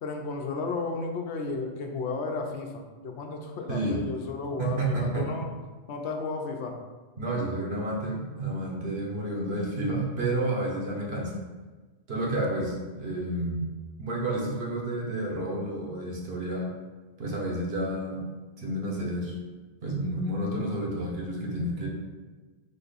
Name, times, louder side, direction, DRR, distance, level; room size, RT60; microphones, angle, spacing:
voice 1, 0.0-5.5 5.9-6.8, left 3 dB, 75° left, 3 dB, 0.9 m, -33 dB
voice 2, 4.6-5.4 7.2-11.3 12.1-13.7 14.0-16.7 17.2-18.2 18.6-19.3 19.8-21.9, right 1 dB, 65° right, -3 dB, 1.2 m, -30 dB
3.7 x 3.4 x 4.0 m, 1.3 s
omnidirectional pair, 1.2 m